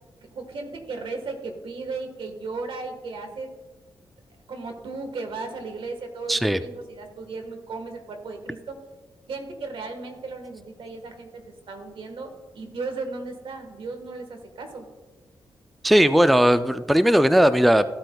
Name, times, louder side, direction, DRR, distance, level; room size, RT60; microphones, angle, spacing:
voice 1, 0.3-3.5 4.5-8.8 9.3-14.9, right 3 dB, 70° right, 5 dB, 1.4 m, -35 dB
voice 2, 6.3-6.6 15.8-17.9, equal, ahead, 12 dB, 0.3 m, -18 dB
14.0 x 7.7 x 2.3 m, 1.3 s
cardioid pair, 80°, 9 cm